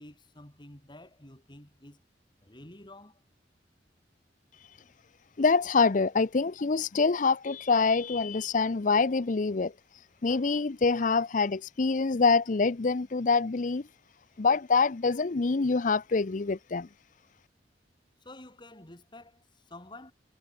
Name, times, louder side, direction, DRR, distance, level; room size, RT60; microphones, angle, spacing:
voice 1, 0.0-2.0 2.4-3.2 18.2-20.1, left 1 dB, 25° left, 3.5 m, -50 dB
voice 2, 5.4-13.8 14.4-16.9, left 4 dB, 45° left, 0.6 m, -26 dB
head